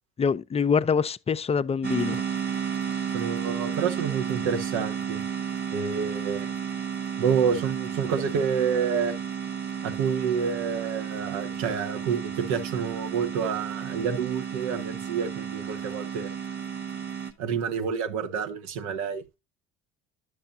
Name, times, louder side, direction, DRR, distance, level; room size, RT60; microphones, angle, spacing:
voice 1, 0.2-2.2, left 6 dB, 20° left, 0.5 m, -25 dB
sound 1, 1.8-17.3, right 8 dB, 35° right, 1.6 m, -32 dB
voice 2, 3.1-5.2 5.7-6.5 7.2-9.1 9.8-16.3 17.4-19.2, right 6 dB, 65° right, 1.4 m, -28 dB
11.0 x 6.8 x 2.7 m
hypercardioid pair, 65°, 30 cm